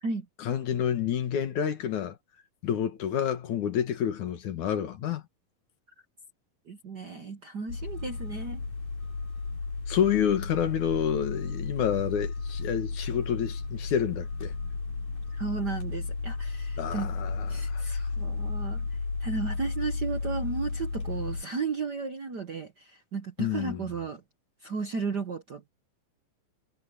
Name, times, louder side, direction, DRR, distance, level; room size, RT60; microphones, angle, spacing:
voice 1, 0.4-2.2 2.6-5.2 9.9-14.5 16.8-17.9 23.4-23.9, left 9 dB, 65° left, 2.9 m, -29 dB
voice 2, 6.7-8.6 15.3-17.1 17.5-24.2 24.6-25.7, right 4 dB, 85° right, 0.9 m, -34 dB
sound 1, 7.7-21.4, left 4 dB, 80° left, 8.0 m, -33 dB
omnidirectional pair, 3.9 m